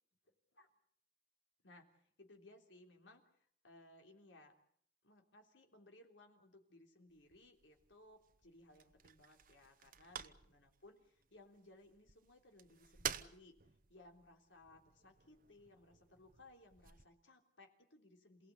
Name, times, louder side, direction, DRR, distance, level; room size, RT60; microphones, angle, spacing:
voice 1, 0.3-0.7 1.6-3.2 3.6-4.6 5.0-13.6 13.9-18.5, left 2 dB, 80° left, 3 dB, 3.5 m, -63 dB
sound 1, 7.1-17.0, right 8 dB, 50° right, 1.0 m, -51 dB
28.0 x 17.5 x 8.4 m, 0.65 s
head